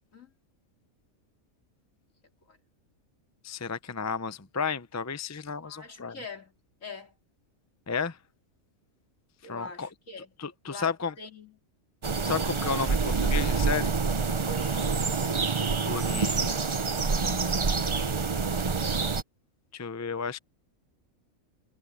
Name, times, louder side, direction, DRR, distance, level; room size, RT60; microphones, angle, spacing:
voice 1, 3.4-6.2 7.9-8.2 9.5-9.9 10.4-11.1 12.2-13.9 15.9-16.5 19.7-20.4, left 5 dB, 20° left, 0.4 m, -32 dB
voice 2, 5.6-6.5 6.8-7.1 9.4-10.3 10.7-11.6 14.5-15.1 17.2-17.7, left 2 dB, 70° left, 3.4 m, -44 dB
sound 1, 12.0-19.2, right 4 dB, 30° right, 0.6 m, -27 dB
omnidirectional pair, 1.4 m